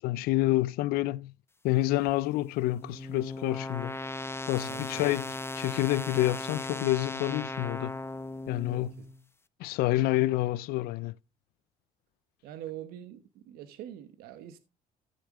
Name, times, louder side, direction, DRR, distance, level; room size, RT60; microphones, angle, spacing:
voice 1, 0.0-1.3 1.6-4.0 4.5-8.0 8.5-8.9 9.6-11.1, left 16 dB, 85° left, 0.4 m, -28 dB
sound 1, 2.1-9.2, left 2 dB, 15° left, 0.9 m, -38 dB
voice 2, 4.6-5.1 8.7-9.1 12.4-14.6, right 11 dB, 90° right, 1.1 m, -44 dB
14.5 x 6.7 x 3.7 m
cardioid pair, 100°, 15 cm